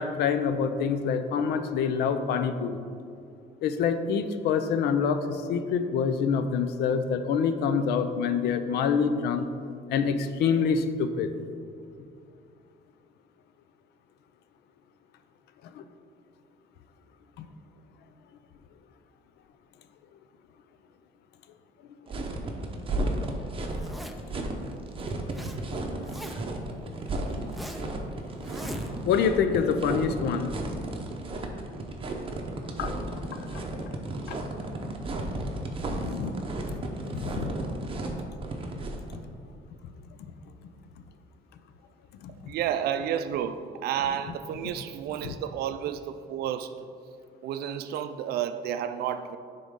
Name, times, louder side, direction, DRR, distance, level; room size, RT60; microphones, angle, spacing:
voice 1, 0.0-2.8 3.6-9.5 9.9-11.3 15.7-15.8 17.4-17.5 29.0-30.5 32.8-32.9 33.3-33.9 34.3-34.4 36.0-36.3 36.7-36.8 37.1-37.5 42.2-42.3 45.2-45.3, left 6 dB, 75° left, 0.5 m, -26 dB
sound 1, 22.1-39.2, right 2 dB, 30° right, 0.8 m, -33 dB
Zipper (clothing), 23.7-24.4 25.0-25.6 25.8-26.6 27.1-27.9 28.4-29.2, equal, ahead, 0.5 m, -40 dB
voice 2, 42.5-46.9 47.4-49.4, right 9 dB, 70° right, 0.4 m, -31 dB
10.0 x 3.8 x 3.6 m
cardioid pair, 110°, 17 cm